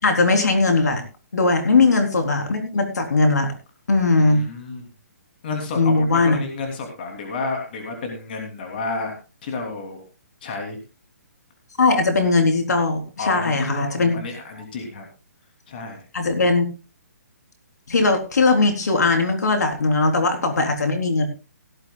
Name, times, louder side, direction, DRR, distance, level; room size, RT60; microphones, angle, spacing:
voice 1, 0.0-1.0 1.3-3.5 3.9-4.4 5.8-6.4 11.8-14.2 16.1-16.7 17.9-21.3, left 3 dB, 80° left, 4 dB, 3.8 m, -19 dB
voice 2, 4.1-4.9 5.4-9.1 9.4-10.0 10.4-10.8 13.2-15.1 15.7-16.0, left 3 dB, 35° left, 3 dB, 3.1 m, -31 dB
17.0 x 13.5 x 2.4 m, 0.30 s
hypercardioid pair, 175°, 9 cm